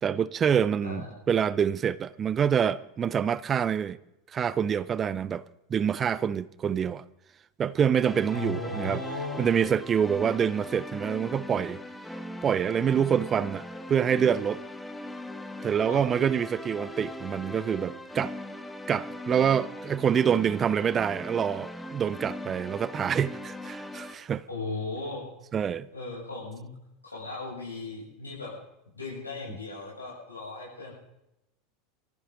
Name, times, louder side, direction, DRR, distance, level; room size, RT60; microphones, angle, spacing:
voice 1, 0.0-4.0 4.3-5.4 5.7-7.0 7.6-9.0 9.4-11.8 12.4-14.6 15.6-18.3 18.9-24.4 25.5-25.9, right 8 dB, 30° right, 0.6 m, -26 dB
sound 1, 8.0-24.1, left 1 dB, 5° left, 1.2 m, -40 dB
voice 2, 8.3-9.5 15.9-16.0 24.5-25.3 25.9-26.7 27.0-28.5 28.9-30.9, left 3 dB, 90° left, 7.8 m, -36 dB
24.0 x 14.5 x 3.9 m
figure-of-eight pair, 80°, 0 cm